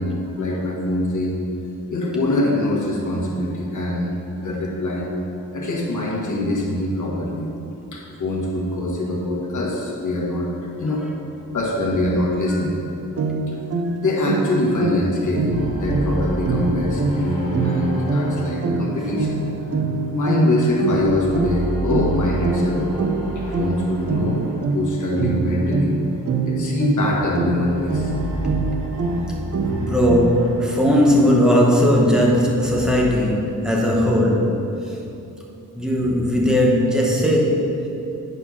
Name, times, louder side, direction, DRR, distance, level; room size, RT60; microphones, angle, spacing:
voice 1, 0.0-1.5 1.9-4.2 4.4-5.1 5.5-7.5 7.9-10.5 10.8-11.1 11.5-12.8 14.0-19.5 20.1-22.9 23.6-24.5 24.7-25.9 26.4-28.1, left 1 dB, 65° left, -3 dB, 1.5 m, -23 dB
sound 1, 13.2-30.6, right 3 dB, 45° right, 0.5 m, -25 dB
sound 2, 15.5-20.5 20.8-26.1 26.9-32.9, equal, 20° left, 1.7 m, -32 dB
voice 2, 29.7-34.6 34.8-35.0 35.7-37.9, equal, ahead, -3 dB, 1.0 m, -18 dB
8.9 x 4.5 x 5.7 m, 2.9 s
wide cardioid pair, 160°, 33 cm